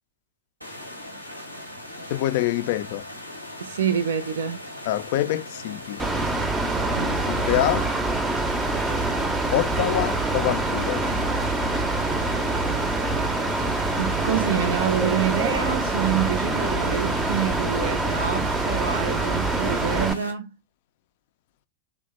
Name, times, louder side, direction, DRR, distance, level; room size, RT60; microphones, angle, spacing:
sound 1, 0.6-20.3, left 1 dB, 90° right, 0.8 m, -39 dB
voice 1, 2.1-3.1 4.9-6.0 7.3-7.9 9.5-11.0, left 15 dB, 50° left, 0.4 m, -25 dB
voice 2, 3.6-4.6 7.0-7.3 14.0-20.5, right 8 dB, 65° right, 0.5 m, -27 dB
Mechanical fan, 6.0-20.1, right 2 dB, 10° right, 0.6 m, -25 dB
3.2 x 2.1 x 4.1 m
figure-of-eight pair, 90°, 0 cm